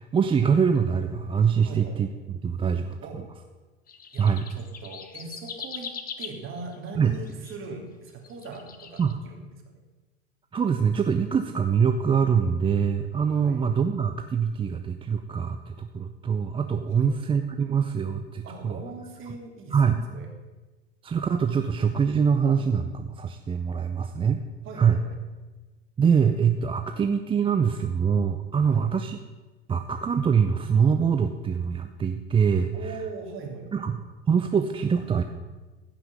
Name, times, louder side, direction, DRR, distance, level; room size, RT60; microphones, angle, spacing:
voice 1, 0.0-3.0 4.2-4.4 7.0-7.1 9.0-9.2 10.5-18.8 19.7-20.0 21.0-24.4 24.8-25.0 26.0-29.2 29.7-32.7 33.7-35.2, right 6 dB, 15° right, 7 dB, 0.6 m, -24 dB
voice 2, 1.6-2.0 3.0-3.3 4.1-5.9 6.2-9.8 13.4-13.6 16.9-17.1 18.4-19.8 20.1-20.3 24.6-25.2 28.7-28.9 32.7-33.8, right 4 dB, 40° right, 2 dB, 2.8 m, -40 dB
sound 1, 3.9-7.6 8.1-9.1, left 6 dB, 25° left, 1.1 m, -40 dB
15.0 x 5.8 x 6.8 m, 1.2 s
hypercardioid pair, 90°, 33 cm